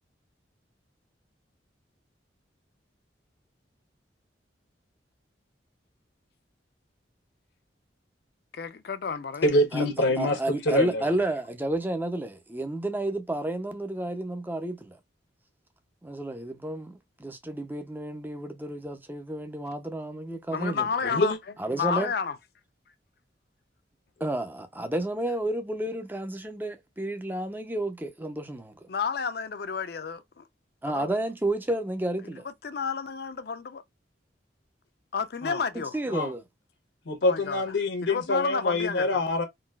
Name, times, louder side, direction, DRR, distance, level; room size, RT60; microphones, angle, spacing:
voice 1, 8.5-9.5 20.5-21.4 21.8-22.4 28.9-30.4 30.8-31.1 32.6-33.8 35.1-36.0 37.2-37.6 38.0-39.2, left 6 dB, 55° left, 0.5 m, -31 dB
voice 2, 9.4-10.4 10.7-11.0 21.1-21.4 35.4-35.6 36.1-36.3 37.1-39.4, left 2 dB, 80° left, 1.0 m, -25 dB
voice 3, 10.2-15.0 16.0-20.9 21.6-22.1 24.2-28.7 30.8-32.4 35.7-36.4, right 1 dB, 10° right, 0.5 m, -31 dB
3.9 x 2.4 x 2.2 m
head